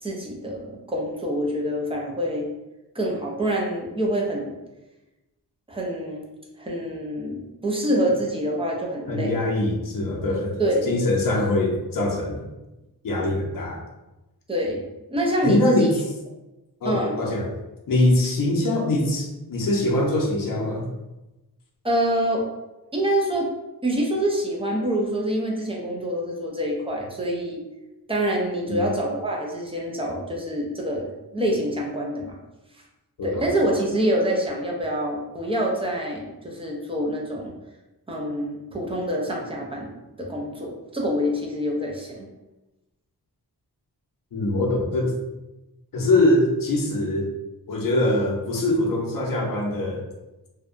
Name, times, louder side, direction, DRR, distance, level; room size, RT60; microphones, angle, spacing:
voice 1, 0.0-2.5 2.9-4.5 5.7-6.2 6.6-9.5 10.6-10.9 14.5-14.8 15.1-15.9 16.8-17.2 21.8-22.5 22.9-23.5 23.8-27.6 28.1-32.4 33.2-37.5 38.1-42.2, right 1 dB, 15° right, -2 dB, 0.4 m, -26 dB
voice 2, 9.1-10.6 10.8-12.5 13.0-13.8 15.4-16.0 16.8-17.5 17.9-20.9 28.7-28.9 33.2-33.4 44.3-45.1 45.9-47.3 47.7-50.0, left 1 dB, 55° left, -1 dB, 0.6 m, -23 dB
2.7 x 2.1 x 2.5 m, 1.0 s
wide cardioid pair, 115°, 39 cm